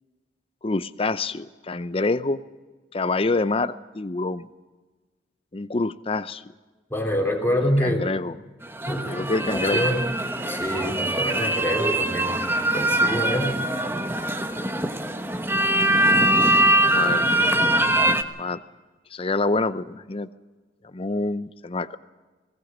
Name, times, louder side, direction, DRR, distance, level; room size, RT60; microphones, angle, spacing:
voice 1, 0.6-2.4 2.9-4.5 5.5-6.4 7.6-8.4 9.1-9.9 16.6-17.3 18.4-18.6 19.1-20.3 20.8-22.0, left 3 dB, 35° left, 14 dB, 0.6 m, -27 dB
voice 2, 6.9-8.1 8.9-10.0 10.5-12.3 12.7-13.6, equal, 15° left, 1 dB, 3.3 m, -26 dB
sound 1, 8.6-18.2, right 1 dB, 15° right, 1.0 m, -22 dB
20.5 x 17.5 x 7.4 m, 1.3 s
head